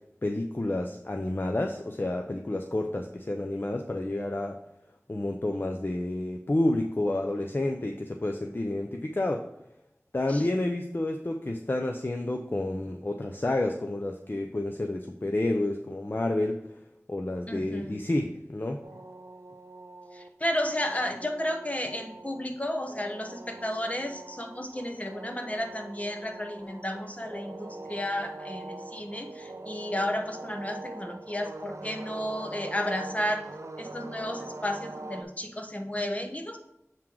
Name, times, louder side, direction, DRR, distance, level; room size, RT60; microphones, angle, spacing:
voice 1, 0.2-4.6 5.1-9.4 10.1-16.6 17.1-18.8, left 1 dB, 40° left, 4 dB, 0.5 m, -29 dB
voice 2, 17.5-18.0 20.1-33.4 33.8-36.6, left 1 dB, 25° left, 4 dB, 1.0 m, -33 dB
sound 1, 18.8-35.2, right 2 dB, 75° right, 0.5 m, -43 dB
7.4 x 3.8 x 4.5 m, 0.85 s
wide cardioid pair, 45°, 5 cm